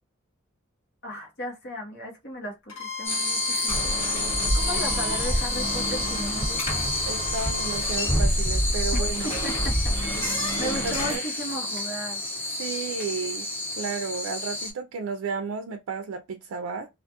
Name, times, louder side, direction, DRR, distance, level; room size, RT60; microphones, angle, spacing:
voice 1, 1.0-4.0 4.5-6.9 8.9-10.2 10.6-12.2, equal, 55° left, 1.0 m, -36 dB
Bowed string instrument, 2.7-7.9, left 5 dB, 90° left, 0.9 m, -38 dB
sound 1, 3.0-14.7, left 2 dB, 10° left, 0.9 m, -30 dB
sound 2, 3.7-11.2, equal, 25° left, 1.5 m, -28 dB
voice 2, 7.1-9.4 10.6-11.2 12.6-13.5 13.8-16.9, right 5 dB, 75° right, 0.4 m, -33 dB
2.5 x 2.3 x 2.8 m
head